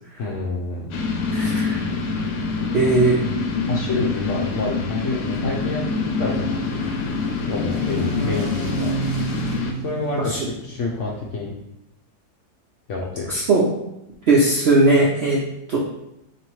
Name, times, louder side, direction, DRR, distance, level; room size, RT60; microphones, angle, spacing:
voice 1, 0.2-0.9 2.8-3.0 3.7-6.9 7.4-8.9 9.8-11.5 12.9-13.3, left 3 dB, 65° left, -2 dB, 0.8 m, -28 dB
sound 1, 0.9-9.7, left 4 dB, 80° left, 1.2 m, -25 dB
voice 2, 1.3-1.8 2.7-3.2 10.2-10.5 13.3-13.6 14.3-15.4 15.7-15.8, right 2 dB, 65° right, -5 dB, 0.6 m, -18 dB
sound 2, 4.3-11.4, right 3 dB, 80° right, 1.1 m, -33 dB
4.2 x 3.0 x 3.0 m, 0.86 s
omnidirectional pair, 1.8 m